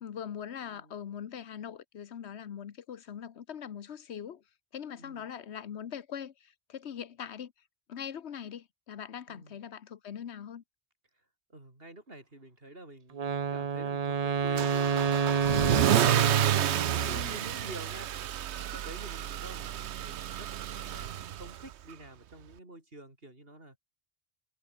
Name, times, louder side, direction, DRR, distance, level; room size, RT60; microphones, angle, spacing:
voice 1, 0.0-4.4 4.7-7.5 7.9-10.6 17.0-17.5, left 8 dB, 85° left, 1.2 m, -42 dB
voice 2, 0.6-1.0 5.0-5.3 9.3-9.6 11.5-18.1 18.5-20.5 20.8-23.8, right 2 dB, 60° right, 5.5 m, -49 dB
Wind instrument woodwind instrument, 13.1-17.3, right 6 dB, 40° right, 0.8 m, -29 dB
Car / Engine starting / Accelerating revving vroom, 14.6-21.7, right 11 dB, 90° right, 1.0 m, -30 dB
omnidirectional pair, 1.1 m